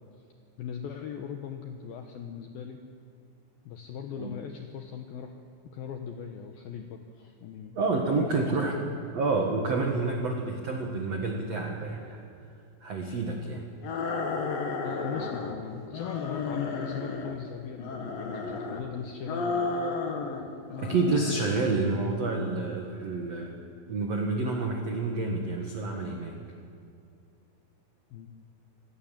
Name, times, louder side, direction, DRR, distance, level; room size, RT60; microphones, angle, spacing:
voice 1, 0.6-2.8 3.7-5.4 5.7-7.8 8.1-8.5 14.8-19.7 28.1-28.3, left 7 dB, 85° left, 5 dB, 2.1 m, -39 dB
voice 2, 7.7-8.8 9.1-12.2 12.8-13.7 20.8-23.5 23.9-26.4, right 3 dB, 75° right, 1 dB, 1.5 m, -29 dB
sound 1, 13.8-15.6 15.9-17.4 17.8-18.8 19.2-20.4 20.7-21.4, left 4 dB, 55° left, 2.9 m, -33 dB
sound 2, 19.6-23.3, left 8 dB, 40° right, 6.6 m, -49 dB
26.5 x 18.5 x 7.4 m, 2.4 s
omnidirectional pair, 5.8 m